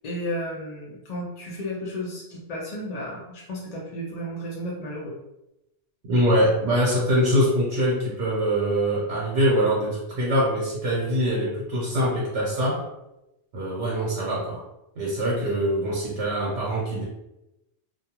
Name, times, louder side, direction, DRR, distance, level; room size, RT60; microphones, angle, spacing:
voice 1, 0.0-5.1, equal, 60° left, -4 dB, 0.4 m, -33 dB
voice 2, 6.1-12.9 13.5-14.6 15.0-17.1, equal, 80° right, -4 dB, 1.0 m, -23 dB
2.3 x 2.2 x 2.8 m, 0.90 s
omnidirectional pair, 1.2 m